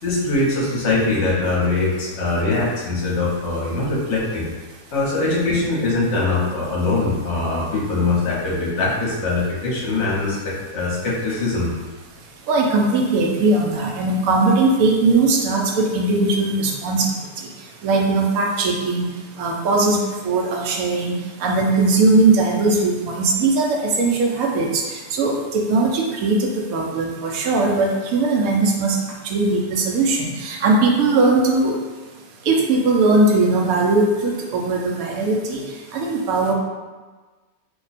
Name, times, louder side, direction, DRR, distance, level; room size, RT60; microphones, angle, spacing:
voice 1, 0.0-4.5 4.9-11.7, left 3 dB, 50° left, -5 dB, 1.0 m, -22 dB
voice 2, 12.5-17.1 17.8-19.1 19.4-20.0 20.2-23.7 24.0-24.8 25.1-29.0 29.2-31.7 32.5-35.6 35.9-36.5, right 3 dB, 65° right, -1 dB, 0.9 m, -19 dB
2.9 x 2.2 x 4.0 m, 1.3 s
omnidirectional pair, 1.8 m